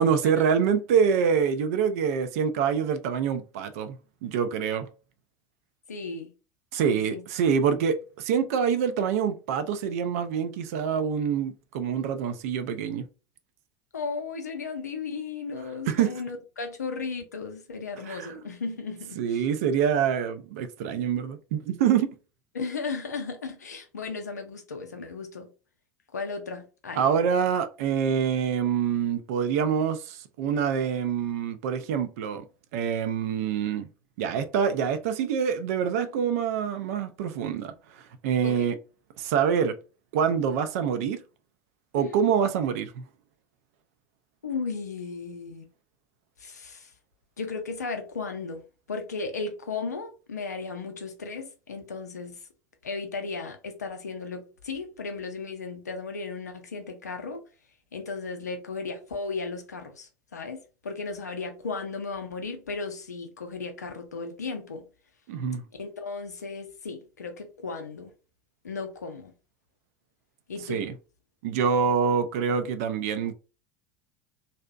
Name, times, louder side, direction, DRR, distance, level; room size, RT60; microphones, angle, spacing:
voice 1, 0.0-4.0 4.2-4.9 6.7-13.0 15.9-16.2 18.1-18.4 19.2-22.2 26.9-32.4 32.7-33.9 34.2-37.7 38.2-38.8 39.2-39.8 40.1-41.2 41.9-43.0 65.3-65.6 70.7-70.9 71.4-73.3, right 7 dB, 60° right, 0.4 m, -26 dB
voice 2, 5.9-6.3 6.9-7.2 13.9-19.4 22.5-25.5 26.1-27.1 38.4-38.7 41.9-42.2 44.4-45.6 46.4-46.9 47.4-48.6 48.9-52.4 52.8-57.4 57.9-64.8 65.7-68.1 68.6-69.3 70.5-70.8, left 4 dB, 80° left, 0.5 m, -35 dB
2.6 x 2.0 x 2.4 m
figure-of-eight pair, 75°, 9 cm